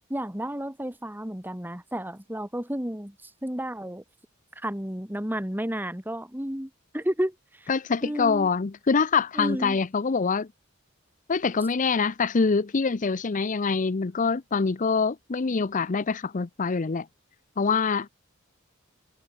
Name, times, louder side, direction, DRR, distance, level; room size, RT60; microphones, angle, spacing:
voice 1, 0.1-3.1 3.4-4.0 4.6-7.3 7.6-7.7 8.0-8.5 9.3-9.8, equal, 10° right, 2.6 m, -31 dB
voice 2, 7.7-10.5 11.3-17.1 17.6-18.1, left 5 dB, 40° left, 0.6 m, -25 dB
head